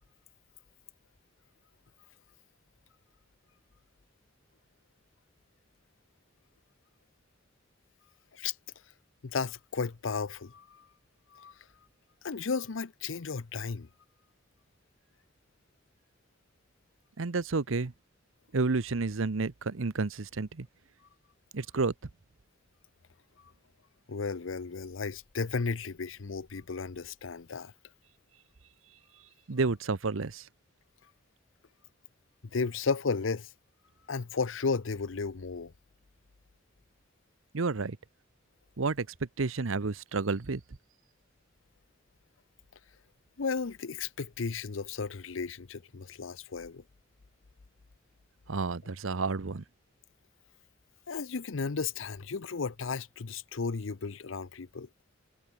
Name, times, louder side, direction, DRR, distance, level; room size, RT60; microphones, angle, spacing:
voice 1, 9.2-10.8 11.3-11.5 12.2-13.9 24.1-27.7 32.5-33.5 34.1-35.7 43.4-46.8 51.1-54.9, left 4 dB, 75° left, 0.7 m, -34 dB
voice 2, 17.2-17.9 18.5-20.7 21.5-21.9 29.5-30.4 37.5-38.0 38.8-39.1 39.4-40.6 48.5-49.6, right 3 dB, 80° right, 0.8 m, -30 dB
head